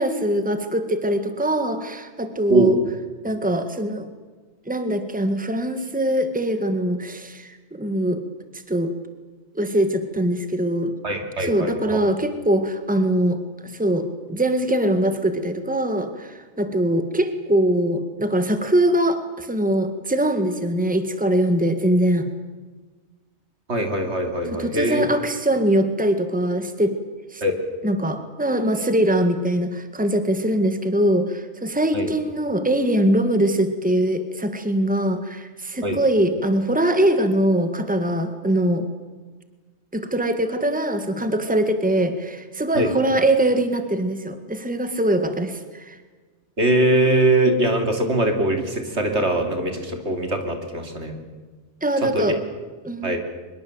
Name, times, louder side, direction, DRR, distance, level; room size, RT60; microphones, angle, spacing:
voice 1, 0.0-2.8 3.2-4.1 4.7-8.2 8.7-8.9 9.5-10.9 11.4-13.4 13.6-22.3 24.5-26.9 27.3-27.4 27.8-38.9 39.9-46.0 51.8-52.4 52.8-53.2, right 1 dB, 5° right, 8 dB, 1.8 m, -22 dB
voice 2, 11.0-12.0 23.7-25.1 27.4-27.5 31.9-32.1 35.8-36.0 42.7-42.9 46.6-51.2 52.0-52.2 53.0-53.2, right 1 dB, 75° right, 5 dB, 3.4 m, -22 dB
24.0 x 22.5 x 8.0 m, 1.3 s
omnidirectional pair, 1.2 m